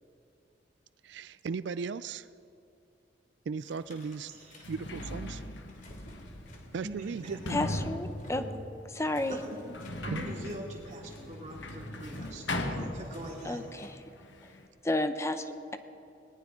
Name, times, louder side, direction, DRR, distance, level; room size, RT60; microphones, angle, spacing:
voice 1, 1.0-2.3 3.5-4.3 4.7-5.4 6.7-7.6 10.1-10.2, right 5 dB, 70° right, 15 dB, 0.4 m, -36 dB
Sliding door, 3.7-3.8 4.4-13.6 13.8-14.7, left 1 dB, 75° left, 1.4 m, -39 dB
sound 1, 3.7-14.1, equal, 45° left, 2.9 m, -53 dB
voice 2, 4.3-4.6 6.8-7.4 8.4-8.5 9.3-9.7 10.0-13.6, right 1 dB, 40° right, -1 dB, 2.8 m, -42 dB
voice 3, 7.5-8.4 8.9-9.4 13.4-14.0 14.8-15.8, left 1 dB, 15° left, 9 dB, 0.7 m, -31 dB
20.0 x 19.5 x 3.8 m, 2.8 s
head